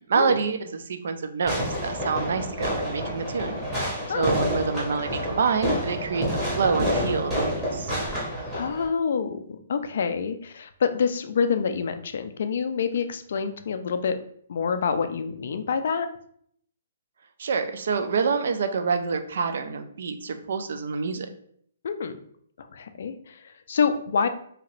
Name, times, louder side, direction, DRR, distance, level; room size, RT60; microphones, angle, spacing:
voice 1, 0.1-3.6 4.1-7.9 17.4-21.3, right 5 dB, 60° right, 8 dB, 0.3 m, -27 dB
Fireworks, 1.5-8.9, equal, 10° right, 0.7 m, -28 dB
voice 2, 8.5-14.2 14.5-16.1 21.8-22.1 22.6-24.3, left 6 dB, 55° left, 9 dB, 0.3 m, -27 dB
2.8 x 2.5 x 3.0 m, 0.64 s
hypercardioid pair, 175°, 0 cm